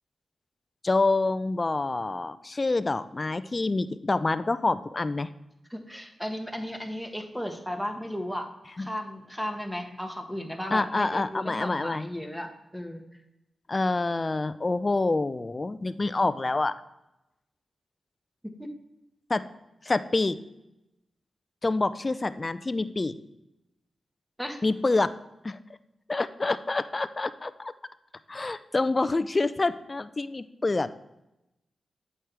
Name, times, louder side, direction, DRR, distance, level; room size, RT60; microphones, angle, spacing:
voice 1, 0.8-5.3 8.8-8.9 10.7-12.0 13.7-16.7 19.3-19.4 19.8-20.4 21.6-23.1 24.6-25.1 25.4-25.6 26.1-27.7 28.3-30.9, left 3 dB, 40° left, 13 dB, 0.5 m, -27 dB
voice 2, 5.7-8.5 8.8-13.0 18.4-18.7 24.4-24.6, equal, ahead, 4 dB, 1.6 m, -35 dB
8.5 x 6.3 x 3.4 m, 0.91 s
supercardioid pair, 40°, 0 cm